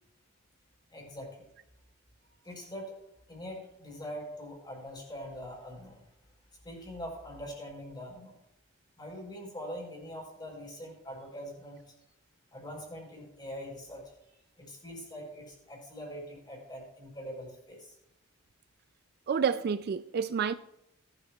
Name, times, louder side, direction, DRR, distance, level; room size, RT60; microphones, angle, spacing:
voice 1, 0.9-1.5 2.4-3.0 3.3-6.0 6.6-8.4 9.0-11.9 12.5-17.9, equal, 20° left, 4.5 m, -43 dB
voice 2, 19.3-20.5, right 6 dB, 45° right, 0.3 m, -29 dB
18.5 x 12.0 x 2.4 m
head